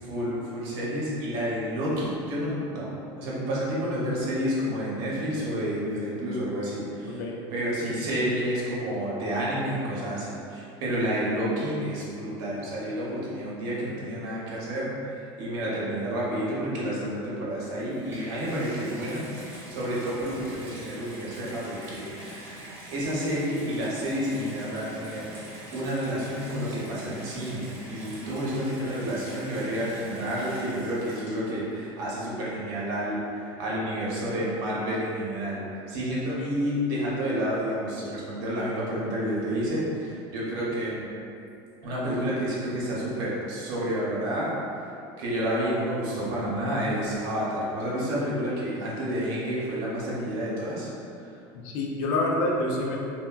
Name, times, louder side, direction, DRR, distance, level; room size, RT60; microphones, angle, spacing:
voice 1, 0.0-2.9 3.2-7.2 7.5-14.9 15.4-19.3 19.7-22.4 22.9-41.0 41.8-44.5 45.2-50.9, equal, 65° right, -6 dB, 0.8 m, -30 dB
Water tap faucet / Bathtub (filling or washing), 17.7-31.7 32.5-32.6, equal, 20° right, 0.7 m, -44 dB
voice 2, 51.5-53.0, left 2 dB, 75° left, -1 dB, 0.4 m, -27 dB
3.3 x 2.1 x 2.3 m, 2.6 s
cardioid pair, 170°, 11 cm